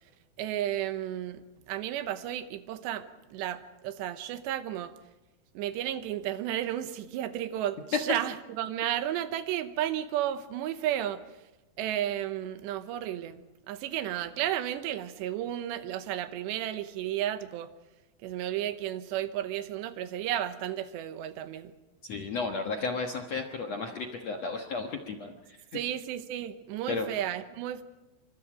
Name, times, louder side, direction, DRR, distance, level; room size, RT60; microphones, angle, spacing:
voice 1, 0.4-4.9 5.5-11.2 11.8-13.4 13.7-17.7 18.2-21.7 25.7-27.8, right 11 dB, 85° right, 10 dB, 3.2 m, -33 dB
voice 2, 22.0-25.8 26.9-27.1, left 4 dB, 60° left, 3 dB, 1.7 m, -34 dB
28.0 x 24.5 x 5.0 m, 1.0 s
omnidirectional pair, 4.9 m